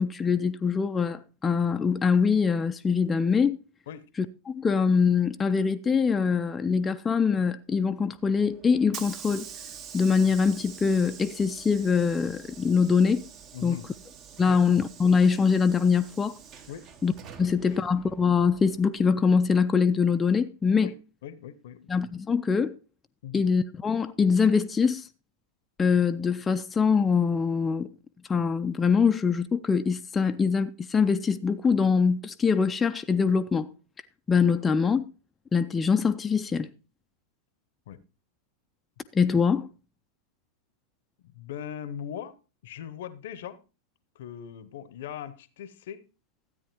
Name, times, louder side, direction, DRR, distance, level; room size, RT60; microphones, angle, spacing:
voice 1, 0.0-3.6 4.5-9.5 9.9-13.2 13.6-13.8 14.4-16.4 17.0-17.1 17.4-20.9 21.9-22.7 23.3-25.1 25.8-27.9 28.3-33.7 34.3-35.0 35.5-36.7 39.1-39.7, left 5 dB, 15° left, 0.4 m, -23 dB
Hiss / Sliding door, 8.2-19.1, right 7 dB, 40° right, 1.0 m, -46 dB
voice 2, 13.5-13.9 14.5-14.6 16.7-16.9 17.4-17.8 20.8-20.9 21.2-21.9 23.2-23.5 37.9-38.0 41.2-42.4 42.6-43.6 44.2-46.0, left 9 dB, 60° left, 0.7 m, -40 dB
13.0 x 8.7 x 3.0 m
figure-of-eight pair, 95°, 0 cm